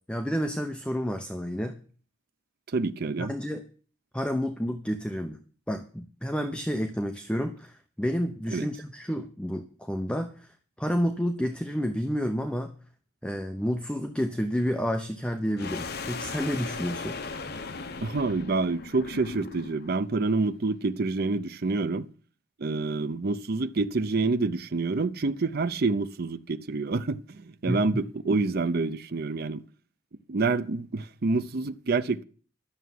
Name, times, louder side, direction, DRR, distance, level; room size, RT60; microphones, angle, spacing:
voice 1, 0.1-1.8 3.2-3.6 4.1-5.4 5.7-10.5 10.8-12.7 13.2-17.2 27.7-28.0, equal, 5° left, 0.8 m, -30 dB
voice 2, 2.7-3.4 8.5-8.7 18.0-22.1 22.6-29.6 30.3-32.2, right 3 dB, 50° right, 0.6 m, -27 dB
sound 1, 15.6-19.9, left 4 dB, 55° left, 1.0 m, -37 dB
11.5 x 7.0 x 9.4 m
head